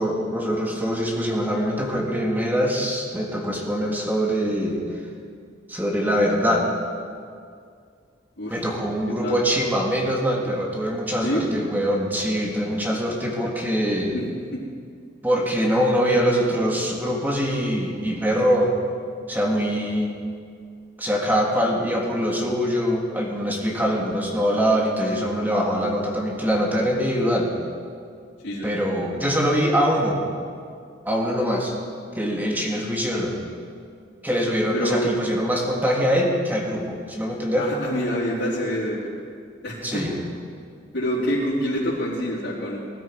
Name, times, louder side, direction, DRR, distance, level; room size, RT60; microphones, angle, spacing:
voice 1, 0.0-4.8 5.7-6.7 8.5-14.2 15.2-18.7 19.3-20.1 21.0-27.5 28.6-30.2 31.1-31.8 32.2-33.4 34.2-37.7 39.8-40.1, equal, 10° right, -1 dB, 1.9 m, -23 dB
voice 2, 34.7-35.1 37.5-39.1 39.6-40.1 40.9-42.8, equal, 75° left, -10 dB, 3.6 m, -26 dB
20.0 x 13.0 x 4.7 m, 2.2 s
head